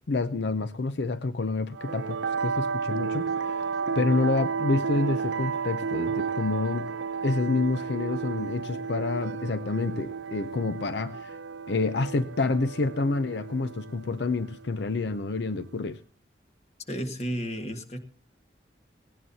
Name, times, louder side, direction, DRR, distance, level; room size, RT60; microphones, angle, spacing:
voice 1, 0.1-3.7 4.0-6.9 7.2-11.3 11.7-16.0, left 3 dB, 75° left, 12 dB, 0.6 m, -28 dB
sound 1, 1.7-15.8, right 5 dB, 90° right, 0.8 m, -33 dB
voice 2, 16.9-18.0, equal, 35° left, 6 dB, 1.7 m, -32 dB
19.0 x 17.5 x 2.8 m, 0.38 s
head